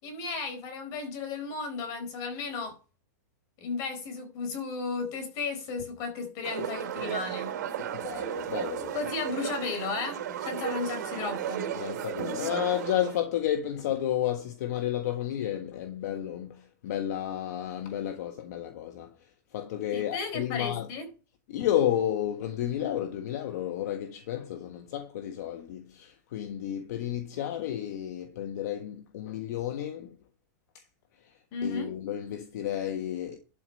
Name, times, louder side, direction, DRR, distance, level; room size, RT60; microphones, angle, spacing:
voice 1, 0.0-2.8 3.6-7.5 8.9-11.7 19.9-21.1 31.5-31.9, left 4 dB, 40° left, 4.3 m, -34 dB
sound 1, 6.4-13.2, right 9 dB, 70° right, 2.8 m, -34 dB
voice 2, 7.8-9.0 11.7-20.9 21.5-30.2 30.7-30.8 31.2-31.3 31.6-33.4, left 11 dB, 60° left, 1.4 m, -32 dB
12.0 x 5.1 x 5.7 m
supercardioid pair, 155°, 10 cm